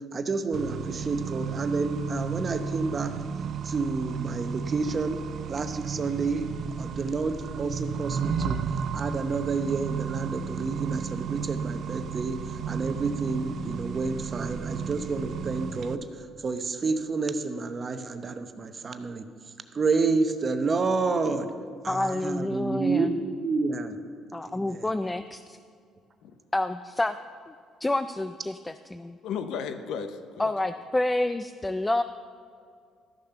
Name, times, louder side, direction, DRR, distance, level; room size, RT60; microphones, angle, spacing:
voice 1, 0.1-3.1 3.6-5.2 5.5-6.5 6.8-8.6 8.9-16.0 16.4-19.3 19.7-21.5 21.8-24.0 24.4-24.9, right 4 dB, 35° right, 8 dB, 0.8 m, -29 dB
Accelerating revving vroom, 0.5-15.9, right 6 dB, 55° right, 0.5 m, -33 dB
voice 2, 21.9-23.2 24.3-25.6 26.5-27.2 27.5-27.6 27.8-29.2 30.4-32.0, left 2 dB, 15° left, 10 dB, 0.3 m, -28 dB
voice 3, 29.2-30.5, left 6 dB, 75° left, 9 dB, 0.8 m, -34 dB
13.5 x 6.6 x 5.7 m, 2.3 s
cardioid pair, 105°, 0 cm